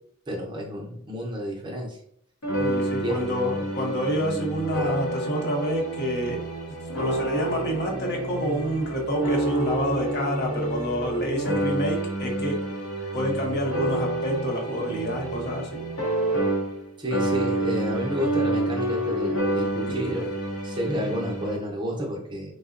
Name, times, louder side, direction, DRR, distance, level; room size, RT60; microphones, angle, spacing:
voice 1, 0.3-2.0 3.0-3.2 17.0-20.3 20.6-22.5, equal, 20° right, -1 dB, 0.5 m, -30 dB
sound 1, 2.4-16.9 17.1-21.6, right 1 dB, 85° left, 0.7 m, -29 dB
voice 2, 2.6-6.4 6.9-12.6 13.1-15.8 20.0-20.1 20.9-21.1, equal, 50° left, 0 dB, 0.7 m, -28 dB
3.6 x 2.0 x 2.4 m, 0.68 s
head